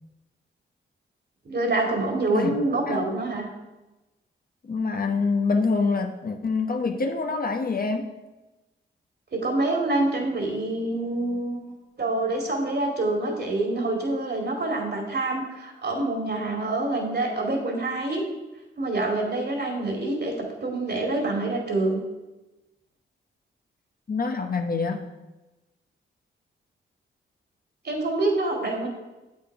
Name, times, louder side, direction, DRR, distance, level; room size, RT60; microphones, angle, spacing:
voice 1, 1.4-3.5 9.3-11.6 12.0-18.2 18.8-22.0 27.8-28.9, right 2 dB, 50° right, 1 dB, 2.5 m, -26 dB
voice 2, 4.6-8.1 24.1-25.0, left 4 dB, 45° left, 5 dB, 1.0 m, -26 dB
7.8 x 6.4 x 4.8 m, 1.1 s
supercardioid pair, 50°, 21 cm